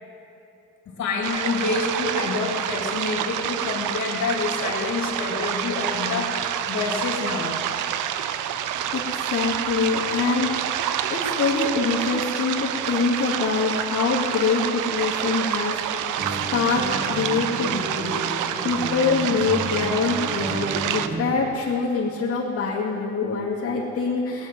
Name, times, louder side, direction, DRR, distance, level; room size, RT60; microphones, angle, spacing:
voice 1, 0.8-7.6 10.1-10.3, left 4 dB, 65° left, -1 dB, 3.2 m, -27 dB
sound 1, 1.2-21.1, right 10 dB, 85° right, 0.7 m, -28 dB
voice 2, 8.9-16.1 16.5-18.2 18.6-24.5, left 4 dB, 50° left, -7 dB, 2.6 m, -25 dB
sound 2, 16.2-21.5, right 2 dB, 35° right, 1.9 m, -33 dB
18.0 x 9.8 x 6.2 m, 2.8 s
cardioid pair, 90°, 30 cm